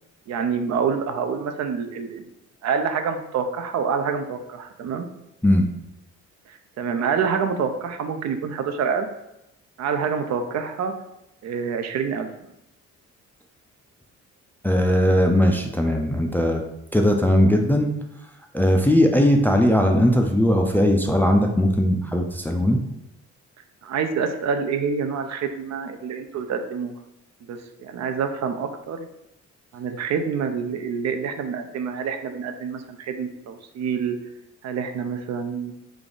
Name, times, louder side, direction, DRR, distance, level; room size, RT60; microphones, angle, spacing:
voice 1, 0.3-2.3 2.6-5.1 6.5-9.1 9.8-10.9 11.4-12.3 23.8-26.9 27.5-29.1 29.7-34.2 34.6-35.7, right 6 dB, 60° right, 7 dB, 0.5 m, -27 dB
voice 2, 14.6-16.6 16.9-17.9 18.5-22.8, equal, 5° left, 3 dB, 0.3 m, -19 dB
3.5 x 2.4 x 3.8 m, 0.86 s
cardioid pair, 90°, 30 cm